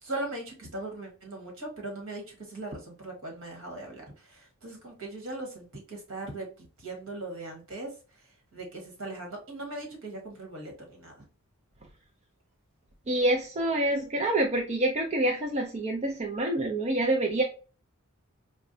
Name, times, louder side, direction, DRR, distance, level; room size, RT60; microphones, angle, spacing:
voice 1, 0.0-11.2, right 2 dB, 65° right, 1 dB, 1.4 m, -39 dB
voice 2, 13.1-17.4, right 1 dB, 30° right, 2 dB, 0.4 m, -27 dB
4.4 x 2.1 x 2.6 m, 0.36 s
head